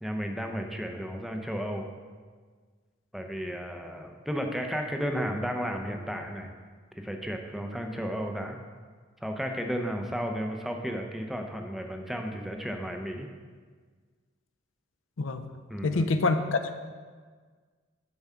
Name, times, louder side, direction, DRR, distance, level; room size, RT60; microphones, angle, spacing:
voice 1, 0.0-1.9 3.1-6.5 6.9-8.6 9.2-13.3 15.7-16.1, equal, ahead, 3 dB, 0.6 m, -33 dB
voice 2, 15.8-16.8, left 3 dB, 70° left, 8 dB, 0.5 m, -26 dB
7.1 x 4.7 x 5.6 m, 1.5 s
head